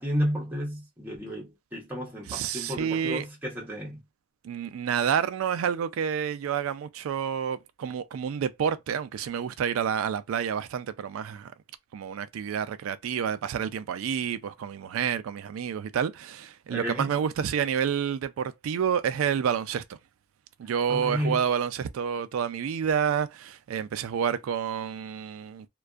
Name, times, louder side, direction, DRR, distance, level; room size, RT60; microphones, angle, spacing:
voice 1, 0.0-4.0 16.7-17.1 20.9-21.4, equal, 10° right, 0.8 m, -32 dB
voice 2, 2.3-3.3 4.4-11.5 11.9-20.0 20.6-25.7, right 7 dB, 80° right, 0.3 m, -29 dB
2.5 x 2.3 x 2.3 m
head